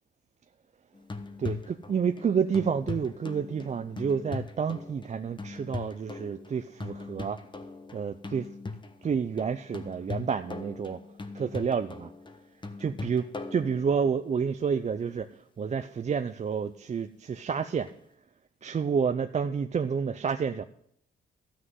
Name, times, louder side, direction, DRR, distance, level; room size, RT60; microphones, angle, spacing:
sound 1, 0.9-14.3 17.9-18.0, left 3 dB, 25° left, 1.2 m, -40 dB
voice 1, 1.4-7.4 7.9-8.5 9.0-11.0 11.3-12.1 12.8-17.9 18.6-20.6, right 6 dB, 35° right, 8 dB, 0.6 m, -29 dB
13.0 x 6.2 x 9.5 m, 0.68 s
cardioid pair, 90°, 20 cm